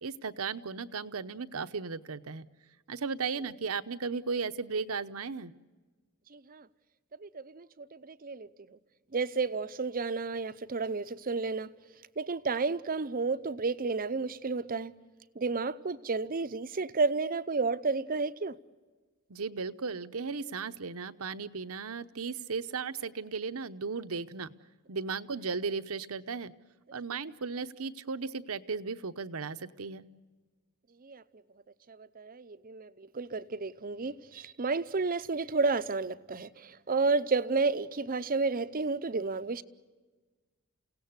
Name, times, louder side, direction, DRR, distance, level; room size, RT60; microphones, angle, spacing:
voice 1, 0.0-2.5 2.9-5.5 19.3-24.5 24.9-26.5 26.9-30.1, right 5 dB, 70° right, 0.8 m, -36 dB
voice 2, 6.3-6.7 7.2-8.8 9.1-11.7 12.2-14.9 15.4-18.6 31.0-31.2 31.9-39.6, right 4 dB, 40° right, 0.7 m, -31 dB
29.0 x 17.5 x 8.1 m
head